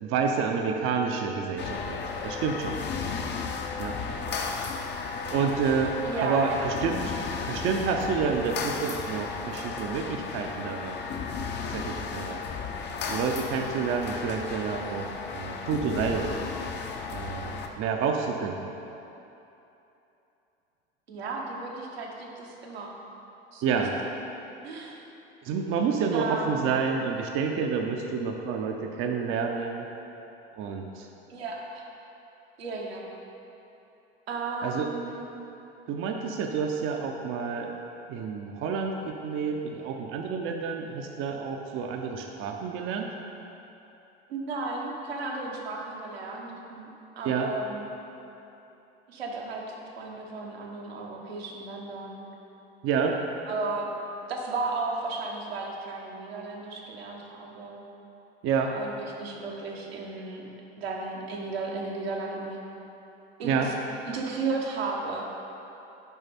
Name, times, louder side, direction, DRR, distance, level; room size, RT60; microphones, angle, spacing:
voice 1, 0.0-2.8 3.8-4.0 5.3-7.2 7.5-11.0 11.7-12.4 13.1-16.3 17.1-18.6 23.6-23.9 25.4-29.8 30.5-31.1 34.6-34.9 35.9-37.7 38.1-43.1 47.2-47.5 52.8-53.2 58.4-58.7 63.4-63.7, right 6 dB, 40° right, 3 dB, 0.6 m, -29 dB
sound 1, 1.6-17.7, left 5 dB, 35° left, 0.6 m, -34 dB
voice 2, 6.0-6.8 21.1-23.0 23.5-23.6 24.6-25.0 26.1-26.6 31.3-31.9 32.6-33.0 34.3-35.2 44.3-46.9 47.2-47.9 49.1-52.2 53.5-53.9 54.3-57.8 58.7-60.5 60.8-62.6 63.4-63.7 64.1-65.2, right 3 dB, 80° right, -1 dB, 1.0 m, -34 dB
7.0 x 5.1 x 4.2 m, 3.0 s
figure-of-eight pair, 70°, 31 cm